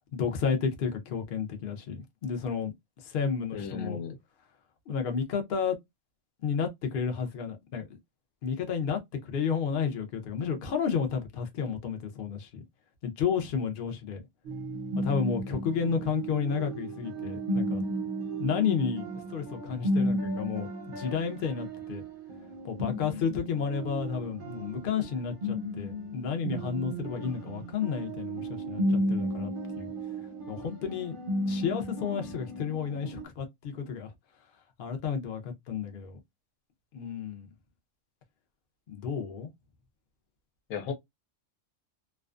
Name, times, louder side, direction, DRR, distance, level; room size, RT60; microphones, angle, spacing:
voice 1, 0.1-4.0 4.9-5.8 6.4-8.0 8.4-12.6 13.0-14.2 15.0-17.8 18.4-22.0 22.6-29.9 30.5-31.2 31.5-34.1 34.8-36.2 36.9-37.5 38.9-39.5, left 6 dB, 55° left, 0.6 m, -32 dB
voice 2, 3.5-4.2 40.7-40.9, left 6 dB, 80° left, 1.1 m, -35 dB
sound 1, 14.4-33.2, equal, 50° right, 0.7 m, -34 dB
2.5 x 2.2 x 2.3 m
omnidirectional pair, 1.5 m